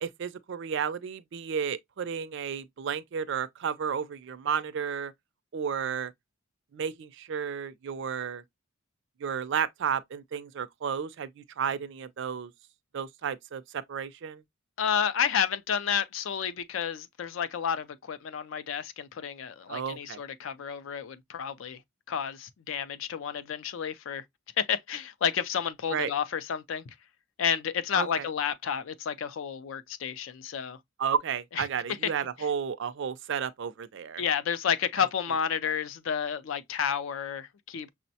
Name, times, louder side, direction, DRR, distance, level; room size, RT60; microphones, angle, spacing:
voice 1, 0.0-5.1 5.5-6.1 6.7-8.4 9.2-12.5 12.9-14.4 19.7-20.2 25.9-26.1 27.9-28.3 31.0-34.2 35.0-35.1, right 7 dB, 60° right, 0.4 m, -32 dB
voice 2, 14.8-21.8 22.1-24.2 24.6-26.9 27.4-30.8 31.6-31.7 32.0-32.1 34.2-37.9, left 7 dB, 65° left, 0.4 m, -30 dB
5.9 x 2.1 x 2.7 m
head